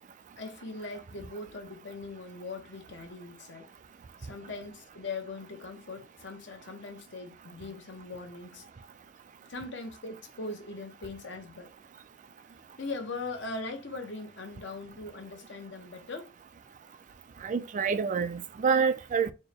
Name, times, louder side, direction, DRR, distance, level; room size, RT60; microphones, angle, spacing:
voice 1, 0.4-3.7 4.2-8.6 9.5-11.7 12.8-16.3, left 3 dB, 70° left, 1.0 m, -40 dB
voice 2, 17.4-19.3, right 5 dB, 40° right, 0.3 m, -27 dB
4.3 x 2.2 x 3.3 m
head